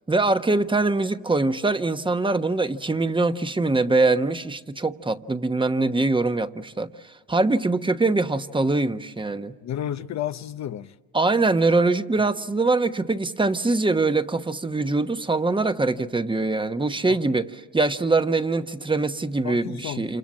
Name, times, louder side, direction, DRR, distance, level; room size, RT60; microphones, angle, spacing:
voice 1, 0.1-9.5 11.1-20.2, right 3 dB, 15° right, 1.1 m, -23 dB
voice 2, 9.6-11.0 17.0-17.2 19.4-20.2, left 11 dB, 65° left, 0.8 m, -32 dB
29.0 x 27.0 x 7.5 m
cardioid pair, 90°, 30 cm